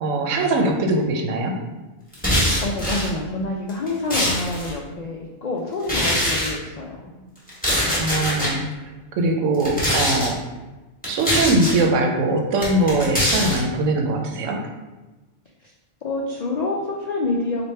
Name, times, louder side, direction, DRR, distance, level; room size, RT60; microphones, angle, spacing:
voice 1, 0.0-1.6 8.0-8.6 9.1-10.4 11.1-14.6, right 2 dB, 90° right, 3 dB, 1.0 m, -21 dB
sound 1, 2.1-3.1 3.7-4.7 5.8-6.5 7.5-8.5 9.5-10.3 11.0-11.8 12.6-13.6, equal, 5° left, 1.1 m, -22 dB
voice 2, 2.6-7.2 7.7-7.9 16.0-17.6, left 2 dB, 90° left, -2 dB, 0.3 m, -27 dB
3.2 x 2.5 x 4.2 m, 1.1 s
omnidirectional pair, 1.3 m